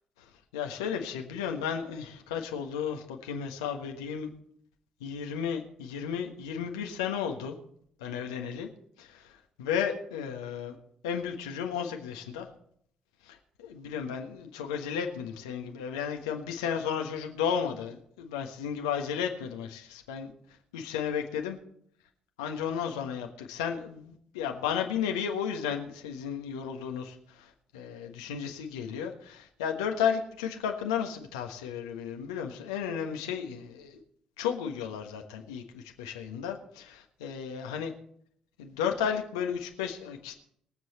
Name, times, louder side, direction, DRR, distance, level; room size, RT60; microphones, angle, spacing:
voice 1, 0.5-4.3 5.0-7.6 8.0-8.7 9.0-10.7 11.0-12.5 13.2-20.3 20.7-21.6 22.4-34.0 34.4-37.9 38.6-40.3, left 7 dB, 75° left, 4 dB, 1.3 m, -33 dB
22.5 x 7.7 x 4.2 m, 0.66 s
figure-of-eight pair, 45°, 3 cm